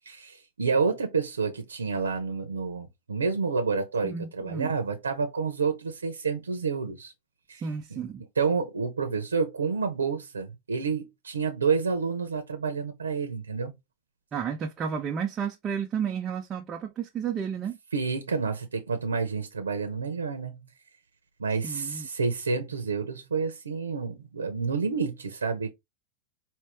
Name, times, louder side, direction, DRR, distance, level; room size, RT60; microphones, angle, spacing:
voice 1, 0.1-7.1 7.5-7.6 7.9-8.0 8.4-13.7 17.9-20.6 21.4-25.7, right 5 dB, 75° right, 1.0 m, -29 dB
voice 2, 4.0-4.7 7.5-8.2 14.3-17.8 21.6-22.1, right 7 dB, 25° right, 0.7 m, -32 dB
5.2 x 2.6 x 3.5 m
figure-of-eight pair, 90°, 0 cm